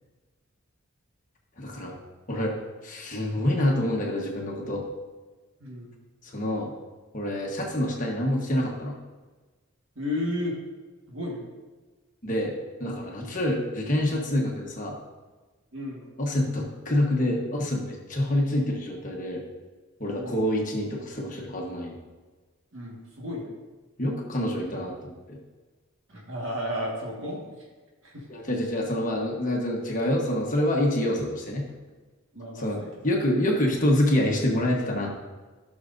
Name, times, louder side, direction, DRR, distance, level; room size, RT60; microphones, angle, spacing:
voice 1, 1.6-2.0 2.3-4.9 6.2-6.7 7.1-9.0 12.2-15.0 16.2-19.4 20.0-22.0 24.0-25.4 28.3-31.7 32.6-32.8 33.0-35.1, left 1 dB, 35° left, -1 dB, 1.2 m, -27 dB
voice 2, 5.6-5.9 9.9-10.5 11.1-11.4 13.2-13.4 15.7-16.1 20.2-20.4 22.7-23.5 26.1-27.7 28.0-28.2 32.3-32.9, left 1 dB, 65° right, -3 dB, 1.7 m, -33 dB
14.0 x 6.3 x 2.6 m, 1.3 s
head